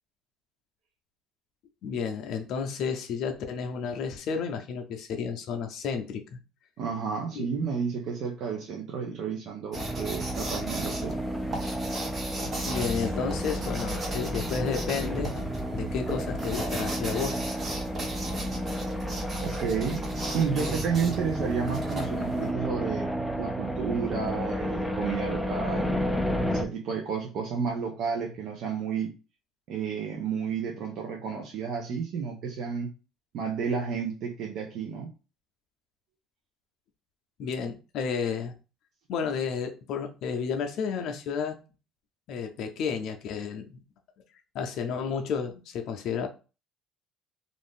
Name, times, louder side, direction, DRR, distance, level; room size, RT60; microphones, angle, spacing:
voice 1, 1.8-6.4 7.3-7.5 12.7-15.5 15.7-17.4 37.4-38.5 39.1-41.6 42.3-43.8 44.5-46.3, left 6 dB, 65° left, 0.5 m, -32 dB
voice 2, 6.8-11.1 19.4-20.0 20.3-23.1 23.4-26.1 26.5-29.1 29.7-32.9 33.3-35.1, right 6 dB, 60° right, 0.6 m, -31 dB
sound 1, 9.7-26.6, equal, ahead, 0.4 m, -32 dB
sound 2, 9.7-22.5, right 2 dB, 35° right, 0.9 m, -38 dB
sound 3, 12.7-18.8, left 1 dB, 90° right, 1.2 m, -41 dB
2.5 x 2.5 x 3.5 m
cardioid pair, 120°, 0 cm